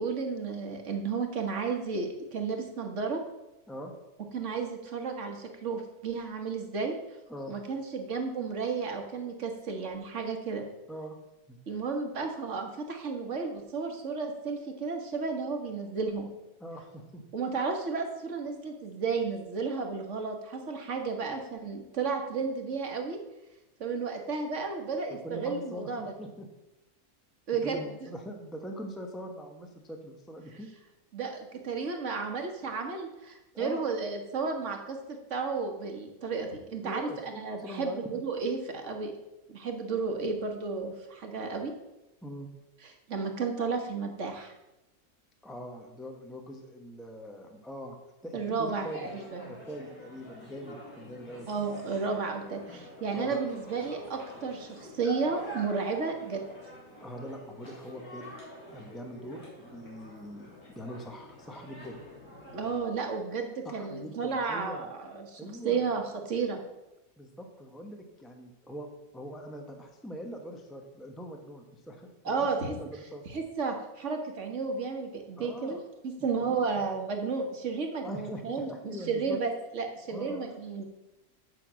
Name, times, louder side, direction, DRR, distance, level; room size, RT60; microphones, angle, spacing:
voice 1, 0.0-3.2 4.3-6.9 7.5-10.6 11.7-16.3 17.3-23.2 23.8-26.1 27.5-27.8 31.1-35.0 35.3-39.1 39.5-41.7 42.8-44.5 48.3-49.5 51.5-56.4 62.5-66.6 72.2-72.8 73.3-80.9, right 4 dB, 55° right, 3 dB, 1.6 m, -33 dB
voice 2, 16.6-17.2 25.2-26.5 27.6-30.7 33.5-33.8 36.8-38.2 42.2-42.5 45.4-48.0 48.2-49.1 49.4-51.5 53.1-53.3 57.0-58.3 58.7-60.5 60.7-62.0 63.6-64.9 65.3-65.9 67.2-68.9 69.1-73.2 75.4-75.8 76.2-76.6 78.0-79.4 80.1-80.5, equal, ahead, 3 dB, 0.8 m, -42 dB
sound 1, 48.7-62.8, equal, 80° left, 3.9 m, -46 dB
8.0 x 5.8 x 7.4 m, 0.97 s
omnidirectional pair, 1.6 m